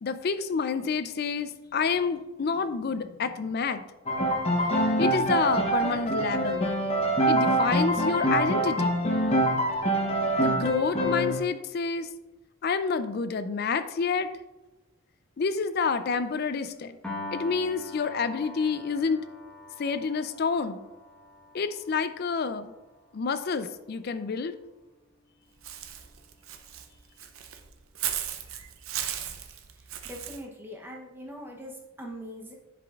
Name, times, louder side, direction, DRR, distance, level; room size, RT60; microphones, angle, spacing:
voice 1, 0.0-3.8 5.0-6.7 7.3-9.0 10.4-12.1 12.6-14.3 15.4-17.0 17.3-19.2 19.8-20.8 21.5-22.7 23.1-24.5, left 5 dB, 50° left, 11 dB, 0.4 m, -28 dB
Piano, 4.1-11.4, right 1 dB, 30° left, 0.8 m, -25 dB
Piano 2, 17.0-23.4, left 2 dB, 5° left, 1.1 m, -44 dB
Walk footsteps / Bird, 25.6-30.4, right 10 dB, 85° right, 0.6 m, -36 dB
voice 2, 30.0-32.5, equal, 10° right, 0 dB, 0.8 m, -41 dB
10.0 x 5.0 x 2.4 m, 1.1 s
head